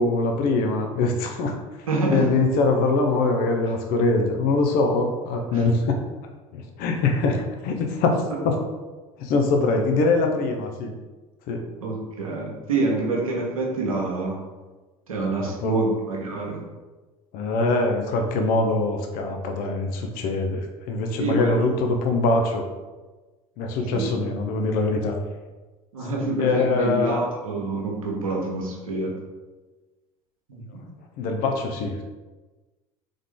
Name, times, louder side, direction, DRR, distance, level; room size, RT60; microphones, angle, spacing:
voice 1, 0.0-1.6 2.1-6.0 6.5-8.5 9.2-10.9 11.5-11.6 15.4-15.8 17.3-22.6 23.6-25.2 26.4-27.2 31.2-32.0, left 3 dB, 55° left, 3 dB, 0.7 m, -23 dB
voice 2, 1.9-2.2 5.5-5.6 11.8-14.4 15.1-16.6 21.2-21.6 23.9-24.1 25.9-29.1 30.5-30.8, right 2 dB, 90° right, -1 dB, 0.9 m, -26 dB
3.6 x 3.4 x 3.6 m, 1.2 s
hypercardioid pair, 70°, 17 cm